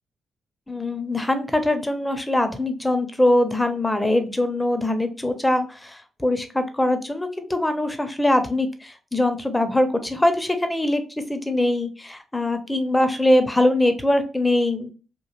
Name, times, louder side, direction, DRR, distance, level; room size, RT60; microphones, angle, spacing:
voice 1, 0.7-11.0 11.3-14.9, left 1 dB, 15° left, 8 dB, 0.6 m, -22 dB
3.0 x 2.4 x 2.4 m, 0.35 s
supercardioid pair, 55°, 0 cm